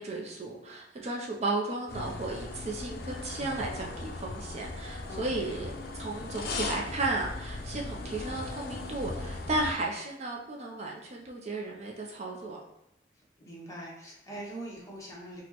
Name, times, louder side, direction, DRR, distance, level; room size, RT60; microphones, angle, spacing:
voice 1, 0.0-12.6, right 2 dB, 40° right, -1 dB, 0.4 m, -34 dB
sound 1, 1.9-9.7, left 2 dB, 60° left, 0.4 m, -38 dB
voice 2, 5.1-5.7 13.4-15.4, right 1 dB, 20° left, -4 dB, 0.8 m, -43 dB
4.1 x 2.0 x 2.9 m, 0.84 s
head